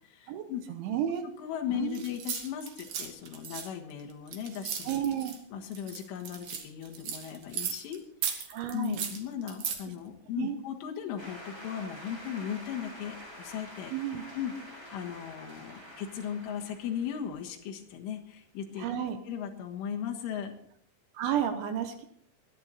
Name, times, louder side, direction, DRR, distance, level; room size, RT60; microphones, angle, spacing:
voice 1, 0.1-0.6 1.4-5.0 5.5-8.0 8.3-8.4 8.7-13.9 14.3-18.9 19.3-20.5, left 9 dB, 75° left, 2 dB, 3.8 m, -37 dB
voice 2, 0.7-1.2 1.7-2.0 4.8-5.4 8.5-9.0 10.4-10.6 13.9-14.3 18.8-19.2 21.1-22.1, right 9 dB, 75° right, 8 dB, 3.0 m, -31 dB
sound 1, 1.9-5.4 5.7-8.0 8.2-9.8, right 8 dB, 55° right, 2.6 m, -36 dB
sound 2, 11.2-18.0, equal, 5° right, 3.5 m, -47 dB
22.5 x 9.8 x 4.1 m, 0.64 s
omnidirectional pair, 6.0 m